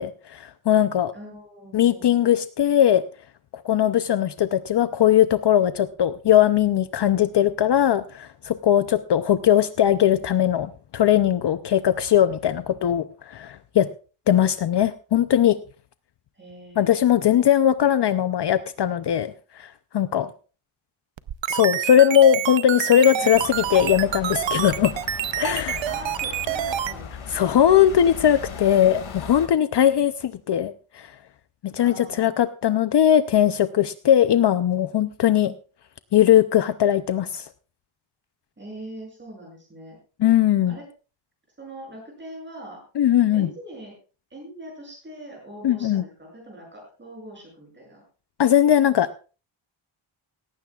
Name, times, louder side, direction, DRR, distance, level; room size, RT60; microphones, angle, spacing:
voice 1, 0.0-1.1 1.7-3.0 3.6-13.9 14.3-15.6 16.8-19.7 19.9-20.3 21.5-24.9 25.4-25.8 27.3-31.1 31.6-35.5 36.1-37.5 40.2-40.8 43.0-43.5 45.6-46.0 48.4-49.1, left 10 dB, 55° left, 12 dB, 0.6 m, -19 dB
voice 2, 1.1-2.3 16.3-17.0 23.3-23.4 25.9-27.5 31.8-32.4 38.6-40.0 40.7-40.9 41.6-42.8 43.3-43.9 44.3-48.0, right 1 dB, 20° right, -1 dB, 7.7 m, -41 dB
sound 1, 21.2-26.9, right 11 dB, 65° right, 0.7 m, -27 dB
sound 2, 23.3-29.5, left 6 dB, 75° left, 2.2 m, -38 dB
17.5 x 15.5 x 2.4 m, 0.35 s
wide cardioid pair, 170°, 49 cm